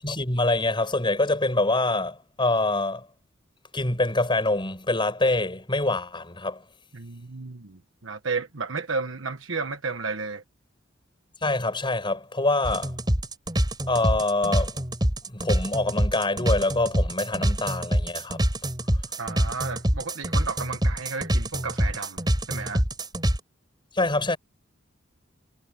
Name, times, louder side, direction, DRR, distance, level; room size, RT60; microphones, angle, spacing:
voice 1, 0.0-3.1 3.7-6.6 11.4-12.9 13.9-14.8 15.3-18.4 23.9-24.4, left 2 dB, 25° left, 6.1 m, -25 dB
voice 2, 6.9-10.4 19.2-22.8, right 4 dB, 75° right, 1.3 m, -33 dB
sound 1, 12.6-23.4, equal, 20° right, 4.5 m, -25 dB
head